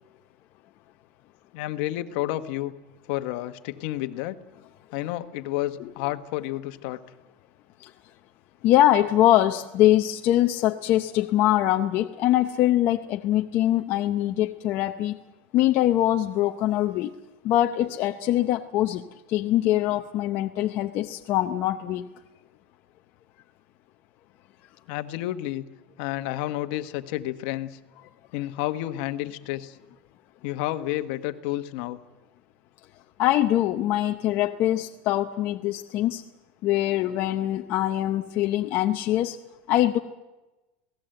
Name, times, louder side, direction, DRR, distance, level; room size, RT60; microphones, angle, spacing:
voice 1, 1.5-2.7 3.1-4.4 4.9-7.0 24.9-25.6 26.0-27.8 28.3-29.8 30.4-32.0, left 15 dB, 60° left, 9 dB, 1.3 m, -30 dB
voice 2, 8.6-15.2 15.5-17.1 17.4-22.1 33.2-36.2 36.6-39.4 39.7-40.0, left 13 dB, 40° left, 5 dB, 0.7 m, -23 dB
27.5 x 18.0 x 7.9 m, 1.1 s
supercardioid pair, 170°, 6 cm